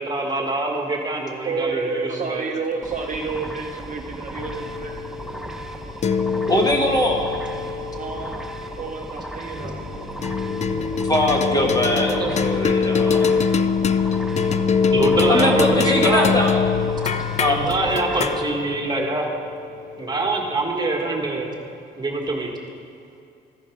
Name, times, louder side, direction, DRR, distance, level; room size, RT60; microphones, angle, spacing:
voice 1, 0.0-2.5 12.2-12.3 14.9-16.3 17.5-19.3 20.0-21.5 22.0-22.5, right 2 dB, 20° right, 0 dB, 1.6 m, -24 dB
voice 2, 1.4-5.4 7.9-8.5 8.8-9.8, right 4 dB, 40° right, 2 dB, 0.7 m, -30 dB
sound 1, 2.8-18.4, right 1 dB, ahead, 0.7 m, -36 dB
sound 2, 4.4-9.0 10.2-20.7, left 5 dB, 35° left, 0.4 m, -24 dB
voice 3, 6.5-7.2 11.1-13.4 15.3-16.7 17.4-17.6, left 1 dB, 20° left, 1 dB, 1.5 m, -21 dB
sound 3, 9.5-17.7, left 2 dB, 75° left, 1.6 m, -40 dB
14.0 x 5.1 x 5.1 m, 2.5 s
cardioid pair, 90°, 20 cm